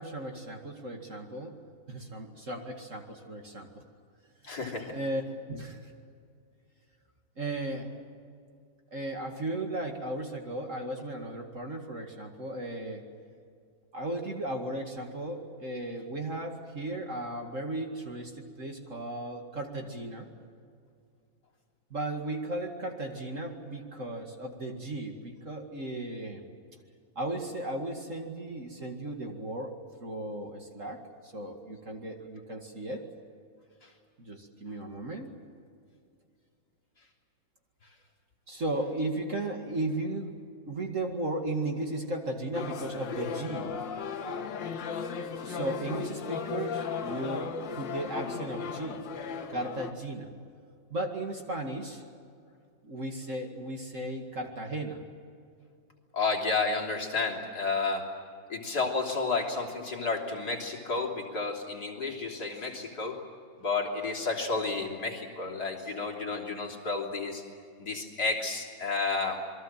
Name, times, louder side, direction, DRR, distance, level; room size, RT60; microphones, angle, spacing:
voice 1, 0.0-1.6 1.9-3.8 4.9-5.2 5.5-5.9 7.4-8.0 8.9-13.0 13.9-20.3 21.9-26.4 27.2-29.8 30.0-33.0 34.2-35.3 38.5-40.3 40.7-43.8 45.4-49.0 49.5-50.3 50.9-52.0 52.8-55.0, right 1 dB, 40° right, 3 dB, 2.4 m, -35 dB
voice 2, 4.4-5.0 56.1-58.1 58.5-63.2 63.6-67.4 67.8-69.4, left 3 dB, 50° left, -1 dB, 3.9 m, -31 dB
sound 1, 42.5-49.9, left 6 dB, 70° left, 2.0 m, -36 dB
28.0 x 22.0 x 7.6 m, 2.3 s
omnidirectional pair, 2.2 m